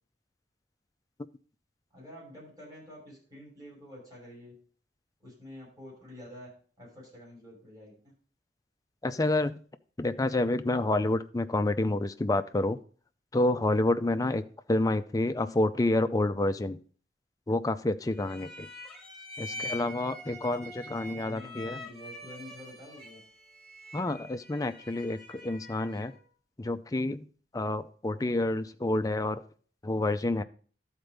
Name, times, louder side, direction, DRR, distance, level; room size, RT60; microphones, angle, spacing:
voice 1, 1.9-4.5 5.2-6.5 6.8-8.1 15.3-15.6 19.5-20.1 21.2-23.2, left 1 dB, 20° right, -6 dB, 5.8 m, -48 dB
voice 2, 9.0-9.6 10.0-12.8 13.3-14.4 14.7-16.8 17.5-18.7 19.4-21.8 23.9-26.1 26.6-27.3 27.5-29.4 29.8-30.4, left 2 dB, 20° left, 9 dB, 0.5 m, -28 dB
sound 1, 18.1-26.2, left 1 dB, 5° left, 2.0 m, -44 dB
12.5 x 4.4 x 5.2 m, 0.44 s
head